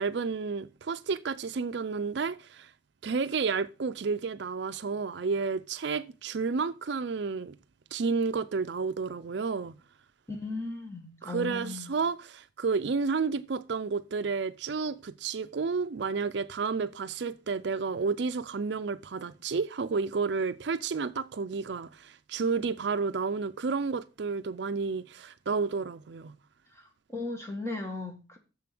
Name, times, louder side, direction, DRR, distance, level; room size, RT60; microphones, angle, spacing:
voice 1, 0.0-2.7 3.0-7.6 7.9-9.7 11.2-26.4, right 4 dB, 65° right, 0.5 m, -31 dB
voice 2, 10.3-12.0 26.7-28.4, left 3 dB, 15° left, 1.9 m, -37 dB
7.1 x 6.9 x 6.0 m
head